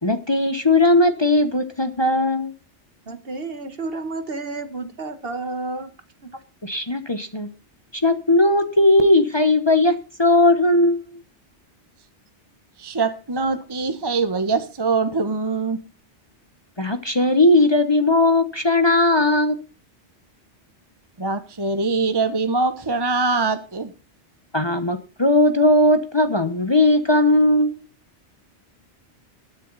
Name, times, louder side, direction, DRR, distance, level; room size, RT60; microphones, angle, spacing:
voice 1, 0.0-2.5 6.6-7.5 8.0-11.2 16.8-19.6 24.5-27.8, left 2 dB, 25° left, 1.0 m, -18 dB
voice 2, 3.1-5.9 6.2-6.3, right 3 dB, 60° right, 1.7 m, -31 dB
voice 3, 12.8-15.8 21.2-23.9, right 4 dB, 25° right, 1.0 m, -23 dB
20.5 x 6.9 x 4.0 m
omnidirectional pair, 1.2 m